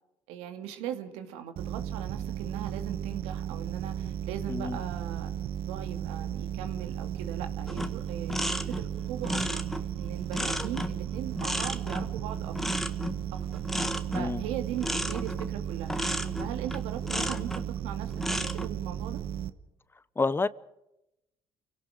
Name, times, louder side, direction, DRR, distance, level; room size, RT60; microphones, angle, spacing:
voice 1, 0.3-5.3 5.7-12.6 13.3-13.6 14.1-16.0 16.4-19.2, right 10 dB, 80° right, 2.4 m, -39 dB
sound 1, 1.6-19.5, right 9 dB, 65° right, 1.1 m, -35 dB
sound 2, 7.7-17.7 18.1-18.7, equal, 5° left, 1.7 m, -33 dB
voice 2, 14.1-14.4 20.2-20.5, left 3 dB, 20° left, 0.8 m, -28 dB
29.5 x 17.5 x 5.0 m
supercardioid pair, 75°, 11 cm